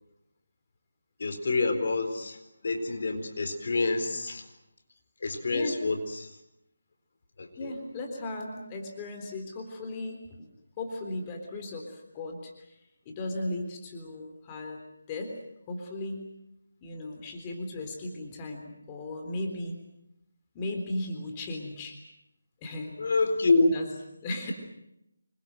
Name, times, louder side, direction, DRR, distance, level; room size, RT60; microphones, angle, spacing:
voice 1, 1.2-4.5 5.2-6.4 7.4-7.7 23.0-23.8, left 3 dB, 50° left, 6 dB, 4.3 m, -27 dB
voice 2, 7.6-10.5 10.8-12.8 13.1-15.3 15.7-16.3 16.8-19.8 20.5-22.0 22.6-22.9 23.7-23.9 24.2-24.5, left 2 dB, 20° left, 3 dB, 3.8 m, -36 dB
27.5 x 23.0 x 7.8 m, 0.84 s
figure-of-eight pair, 160°, 0 cm